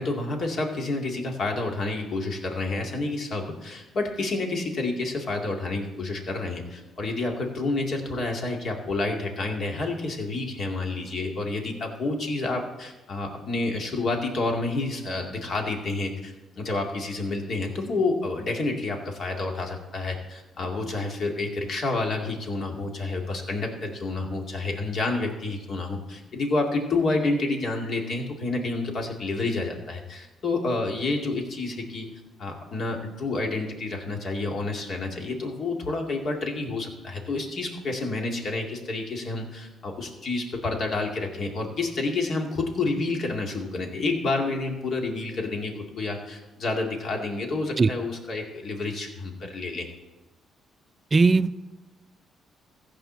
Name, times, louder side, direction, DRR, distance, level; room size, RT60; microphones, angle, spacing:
voice 1, 0.0-32.1 32.4-49.9, left 3 dB, 55° left, 2 dB, 2.2 m, -29 dB
voice 2, 51.1-51.7, right 3 dB, 30° right, 14 dB, 0.4 m, -19 dB
15.0 x 5.1 x 7.5 m, 1.1 s
cardioid pair, 90°, 0 cm